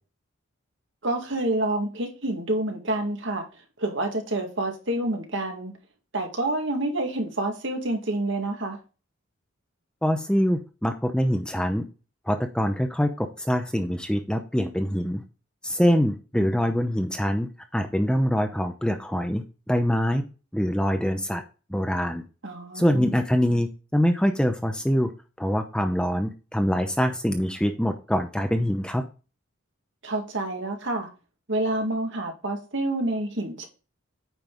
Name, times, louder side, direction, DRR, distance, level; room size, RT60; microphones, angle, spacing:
voice 1, 1.0-3.5 3.8-5.7 6.1-8.8 22.4-23.2 30.0-31.1 31.5-33.7, right 1 dB, 60° right, 2.1 m, -28 dB
voice 2, 10.0-11.8 12.3-15.2 15.6-20.2 20.5-21.4 21.7-22.2 22.7-25.1 25.4-29.0, equal, 5° left, 0.7 m, -24 dB
9.2 x 5.4 x 3.9 m
head